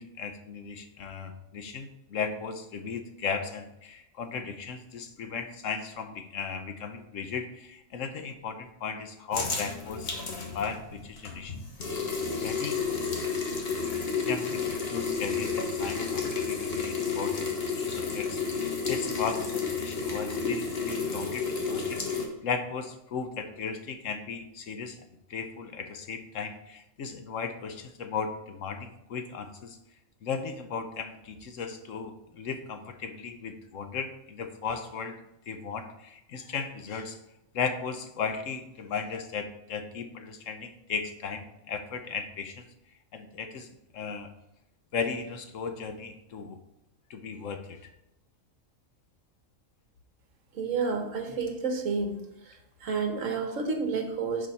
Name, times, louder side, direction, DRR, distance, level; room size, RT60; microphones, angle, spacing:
voice 1, 0.0-11.9 12.4-12.8 14.2-29.8 30.2-37.2 37.5-42.7 43.1-44.3 44.9-46.6 47.1-47.9, left 5 dB, 70° left, 8 dB, 1.1 m, -36 dB
sound 1, 9.3-22.3, left 5 dB, 45° left, 1.5 m, -31 dB
voice 2, 50.5-52.2 52.5-52.6 52.8-54.5, right 4 dB, 65° right, 5 dB, 1.5 m, -30 dB
10.5 x 4.9 x 4.1 m, 0.87 s
omnidirectional pair, 1.5 m